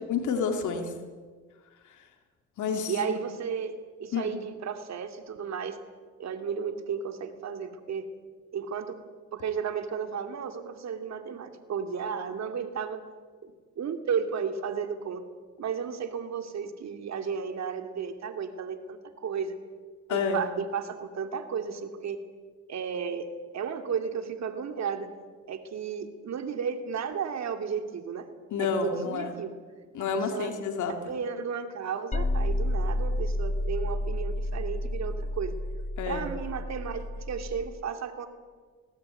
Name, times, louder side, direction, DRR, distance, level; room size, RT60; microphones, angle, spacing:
voice 1, 0.1-0.9 1.9-2.1 2.6-3.2 4.1-4.3 20.1-20.4 28.5-29.4 29.9-31.1 36.0-36.3, left 5 dB, 75° left, 5 dB, 2.8 m, -30 dB
voice 2, 2.9-5.8 6.2-8.1 8.5-9.0 9.3-13.0 13.4-15.2 15.6-19.6 20.1-22.2 22.7-23.3 23.5-25.1 25.5-28.3 28.6-29.6 30.1-30.5 31.0-35.6 36.1-38.3, right 6 dB, 60° right, 7 dB, 2.8 m, -33 dB
sound 1, 32.1-37.6, left 1 dB, 25° left, 1.4 m, -30 dB
20.0 x 17.5 x 9.2 m, 1.5 s
cardioid pair, 90°, 30 cm